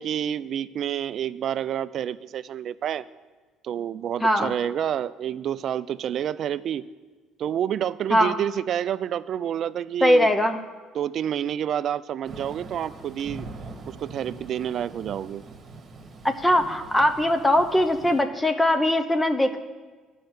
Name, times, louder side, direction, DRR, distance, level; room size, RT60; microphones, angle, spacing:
voice 1, 0.0-3.0 3.6-6.8 7.4-10.3 10.9-13.5 13.9-15.4, right 9 dB, 60° right, 17 dB, 0.3 m, -28 dB
voice 2, 4.2-4.5 8.1-8.4 10.0-10.6 16.2-19.6, left 1 dB, 10° left, 6 dB, 0.8 m, -21 dB
Thunder / Rain, 12.2-18.2, right 3 dB, 40° right, 1.5 m, -42 dB
10.5 x 5.5 x 7.8 m, 1.4 s
supercardioid pair, 70°, 0 cm